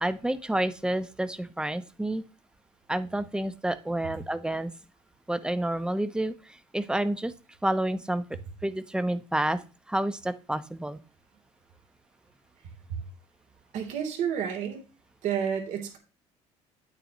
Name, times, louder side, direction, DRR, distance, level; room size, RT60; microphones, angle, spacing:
voice 1, 0.0-2.2 2.9-4.7 5.3-7.3 7.6-8.2 8.6-9.6 9.9-11.0, right 1 dB, 5° right, 12 dB, 0.9 m, -29 dB
voice 2, 13.7-14.8 15.2-16.0, right 8 dB, 65° right, 3 dB, 3.4 m, -30 dB
10.0 x 8.9 x 3.1 m, 0.33 s
cardioid pair, 105°, 13 cm